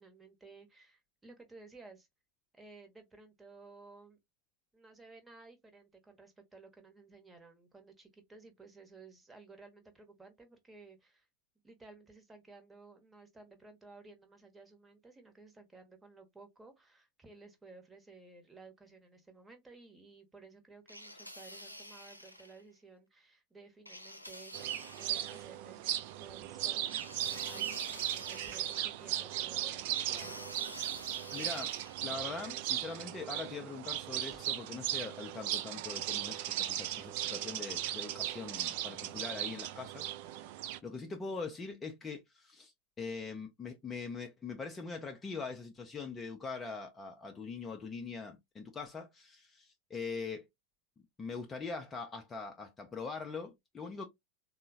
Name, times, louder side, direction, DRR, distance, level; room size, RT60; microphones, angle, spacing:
voice 1, 0.0-2.1 2.5-4.2 4.7-11.3 11.6-30.4, right 3 dB, 10° right, 0.9 m, -56 dB
sound 1, 20.9-22.6 23.9-25.5 26.9-29.2 29.9-32.0, left 1 dB, 90° left, 0.5 m, -49 dB
sound 2, 24.5-40.8, right 13 dB, 50° right, 0.3 m, -37 dB
voice 2, 31.3-40.5 40.8-50.5 51.2-54.0, left 4 dB, 20° left, 0.5 m, -42 dB
3.6 x 2.0 x 2.6 m
figure-of-eight pair, 90°, 0 cm